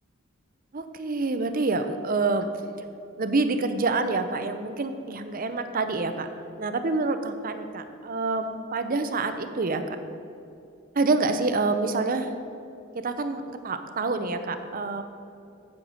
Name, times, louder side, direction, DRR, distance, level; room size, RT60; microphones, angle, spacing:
voice 1, 0.7-2.5 3.2-6.3 6.6-9.8 11.0-12.3 12.9-15.0, right 3 dB, 45° right, 9 dB, 0.7 m, -27 dB
8.8 x 8.4 x 6.4 m, 2.6 s
head